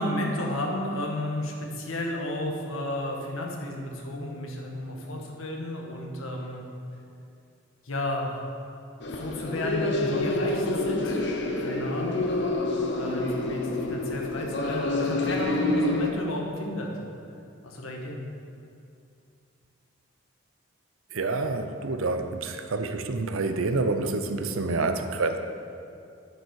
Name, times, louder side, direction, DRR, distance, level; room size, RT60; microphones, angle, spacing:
voice 1, 0.0-6.6 7.8-8.3 9.1-11.2 11.6-12.3 12.9-16.9 17.6-18.2, left 1 dB, 80° left, 0 dB, 1.4 m, -32 dB
sound 1, 9.0-16.1, left 2 dB, 55° left, 0.8 m, -28 dB
voice 2, 21.1-25.4, right 3 dB, 80° right, 8 dB, 0.6 m, -28 dB
9.8 x 7.0 x 4.8 m, 2.5 s
head